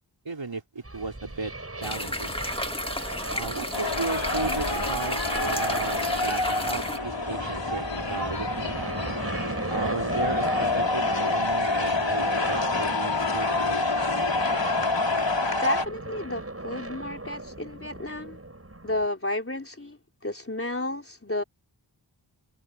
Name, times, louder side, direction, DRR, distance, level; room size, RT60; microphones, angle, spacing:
voice 1, 0.2-2.4 3.3-8.9 9.7-13.8, right 4 dB, 75° right, 4.6 m, -35 dB
sound 1, 0.8-19.1, right 2 dB, 30° right, 7.1 m, -36 dB
sound 2, 1.8-7.0, left 1 dB, 10° left, 1.9 m, -33 dB
sound 3, 3.7-15.9, left 3 dB, 70° left, 5.4 m, -27 dB
voice 2, 15.4-18.4 18.8-21.4, left 1 dB, 30° left, 3.8 m, -32 dB
wide cardioid pair, 50°, 45 cm